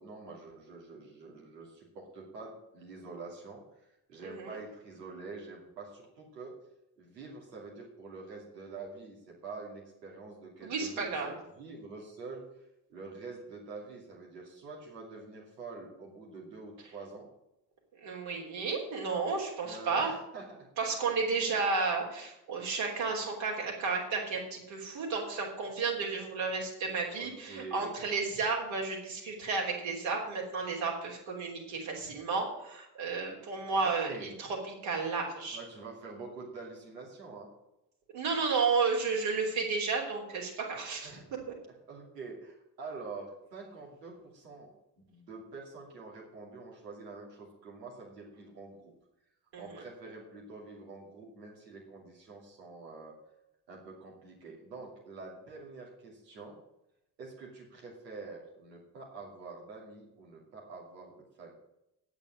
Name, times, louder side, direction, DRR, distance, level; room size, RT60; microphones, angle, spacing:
voice 1, 0.0-3.6 4.1-6.5 7.0-12.4 12.9-17.3 19.6-20.7 27.2-28.0 33.8-34.3 35.5-37.5 41.0-41.3 41.9-44.7 45.1-48.9 49.6-53.1 53.7-56.6 57.2-61.1 61.4-61.5, right 3 dB, 85° right, -2 dB, 2.6 m, -46 dB
voice 2, 4.2-4.6 10.6-11.3 18.0-20.1 20.8-34.5 34.8-35.6 38.1-41.1 49.5-49.6, right 4 dB, 65° right, -1 dB, 3.5 m, -32 dB
9.2 x 8.6 x 7.5 m, 0.87 s
figure-of-eight pair, 40°, 48 cm